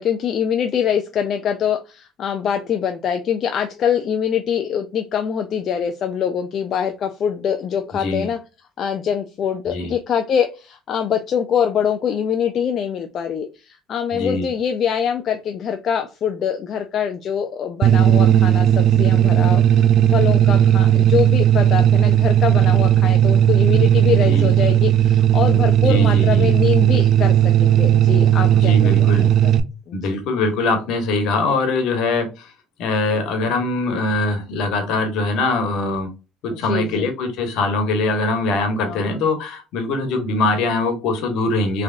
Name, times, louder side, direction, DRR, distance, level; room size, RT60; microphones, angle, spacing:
voice 1, 0.0-8.4 8.8-29.3 29.9-30.0 36.5-37.1 38.8-39.2, left 8 dB, 50° left, 6 dB, 0.4 m, -24 dB
voice 2, 14.1-14.5 24.2-24.5 25.9-26.5 28.6-29.3 29.9-32.5 32.8-36.1 36.4-41.8, left 3 dB, 70° left, 6 dB, 1.3 m, -22 dB
sound 1, 17.8-29.6, right 11 dB, 60° right, 0.4 m, -15 dB
3.5 x 3.3 x 2.5 m, 0.30 s
supercardioid pair, 90°, 0 cm